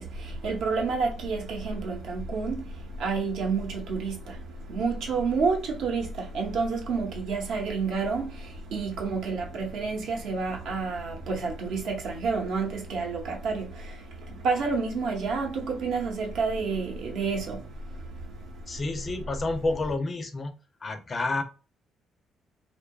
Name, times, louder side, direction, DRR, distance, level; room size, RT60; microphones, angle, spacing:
voice 1, 0.0-18.8, right 4 dB, 75° right, 0.7 m, -30 dB
voice 2, 18.7-20.5 20.8-21.4, left 2 dB, 30° left, 0.4 m, -29 dB
2.7 x 2.2 x 2.2 m
cardioid pair, 110°, 0 cm